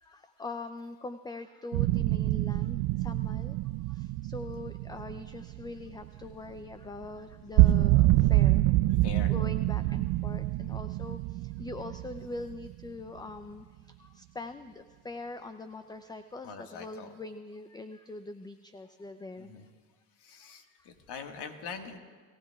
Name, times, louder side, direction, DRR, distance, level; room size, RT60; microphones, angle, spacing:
voice 1, 0.0-3.6 3.9-19.5 20.4-20.9, left 3 dB, 10° left, 10 dB, 0.5 m, -43 dB
sound 1, 1.7-6.6 6.9-7.1 7.3-12.9, right 17 dB, 60° right, 0.5 m, -26 dB
voice 2, 9.0-9.3 16.4-17.1 19.4-19.7 20.2-22.0, left 6 dB, 60° left, 5 dB, 1.8 m, -43 dB
22.0 x 15.0 x 2.4 m, 1.5 s
hypercardioid pair, 65°, 47 cm